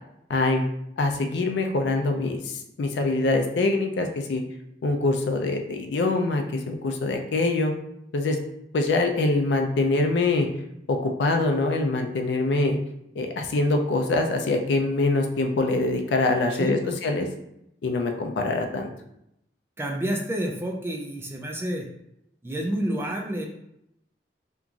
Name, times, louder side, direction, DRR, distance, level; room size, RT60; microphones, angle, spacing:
voice 1, 0.3-0.6 1.0-2.5 2.8-4.4 4.8-7.7 8.1-8.4 8.7-10.5 10.9-12.8 13.2-17.3 17.8-18.9, left 2 dB, 80° left, 4 dB, 0.4 m, -24 dB
voice 2, 16.6-16.9 19.8-21.9 22.4-23.5, right 1 dB, 15° right, 0 dB, 0.3 m, -29 dB
2.9 x 2.4 x 2.4 m, 0.80 s
head